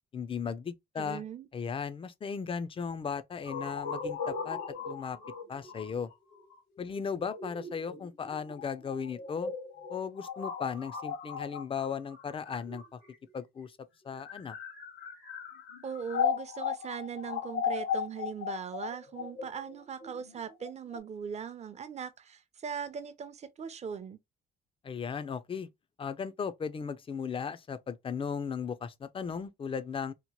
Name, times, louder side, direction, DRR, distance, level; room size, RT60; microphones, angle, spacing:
voice 1, 0.1-1.2 1.5-4.6 4.9-5.2 5.5-6.1 6.8-9.5 9.9-13.0 13.3-13.7 14.0-14.6 24.8-25.7 26.0-30.1, left 6 dB, 25° left, 0.3 m, -36 dB
voice 2, 1.0-1.5 15.8-24.2, right 7 dB, 35° right, 0.5 m, -40 dB
sound 1, 3.5-13.3 14.0-21.0, left 6 dB, 80° left, 1.0 m, -37 dB
2.9 x 2.1 x 2.9 m
cardioid pair, 90°, 20 cm